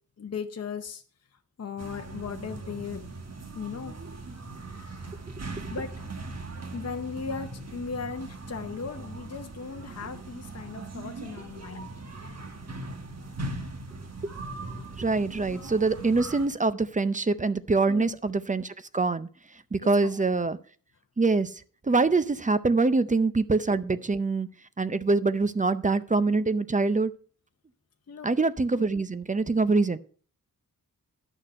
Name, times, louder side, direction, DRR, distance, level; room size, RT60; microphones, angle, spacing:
voice 1, 0.2-1.0 1.6-3.0 3.5-3.9 5.7-5.9 6.7-12.4 17.9-18.2 19.8-20.2 28.1-28.3 28.7-28.8, left 5 dB, 50° left, 5 dB, 0.8 m, -37 dB
sound 1, 1.8-16.5, right 2 dB, 50° right, 1.4 m, -40 dB
voice 2, 15.0-19.3 19.7-20.6 21.2-21.5 21.8-24.5 24.8-27.1 28.2-30.0, right 3 dB, 25° right, 14 dB, 0.5 m, -24 dB
11.0 x 6.5 x 5.4 m, 0.43 s
wide cardioid pair, 125°, 33 cm